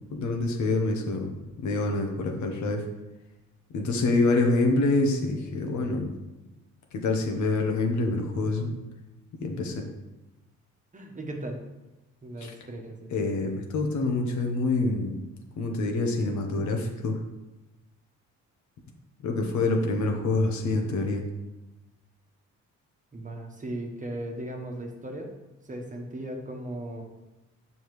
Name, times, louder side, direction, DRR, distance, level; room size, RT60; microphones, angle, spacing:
voice 1, 0.1-2.8 3.7-6.1 6.9-8.7 9.4-9.8 12.4-12.5 13.1-15.2 15.6-17.2 19.2-21.2, left 2 dB, 70° left, 2 dB, 1.2 m, -26 dB
voice 2, 10.9-11.6 12.2-13.2 19.3-19.7 23.1-25.3 25.6-27.1, right 1 dB, 25° right, 2 dB, 1.2 m, -37 dB
7.2 x 5.2 x 3.2 m, 1.0 s
cardioid pair, 90°, 30 cm